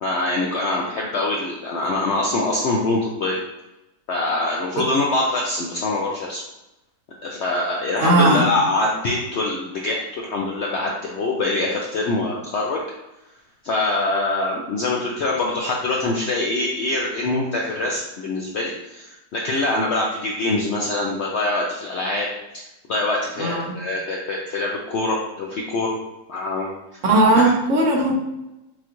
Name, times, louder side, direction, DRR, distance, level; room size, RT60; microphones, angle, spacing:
voice 1, 0.0-3.4 4.1-6.4 7.2-12.8 13.6-22.3 22.9-26.0 26.3-26.7, left 2 dB, 70° left, -2 dB, 0.6 m, -24 dB
voice 2, 8.0-8.4 23.4-23.7 27.0-28.2, right 2 dB, 60° right, -1 dB, 1.1 m, -17 dB
5.8 x 2.4 x 3.0 m, 0.96 s
omnidirectional pair, 1.7 m